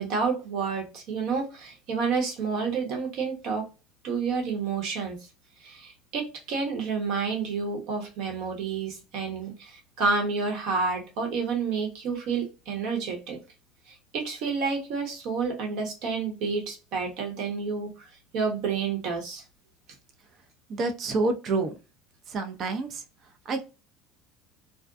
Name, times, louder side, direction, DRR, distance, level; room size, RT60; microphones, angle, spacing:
voice 1, 0.0-3.6 4.0-5.2 5.6-13.4 13.9-18.1 18.3-19.4, right 5 dB, 65° right, 1 dB, 1.1 m, -29 dB
voice 2, 20.7-21.7 22.3-23.0 23.5-23.7, right 3 dB, 45° right, 7 dB, 0.5 m, -28 dB
2.5 x 2.1 x 2.5 m, 0.30 s
supercardioid pair, 95°, 0 cm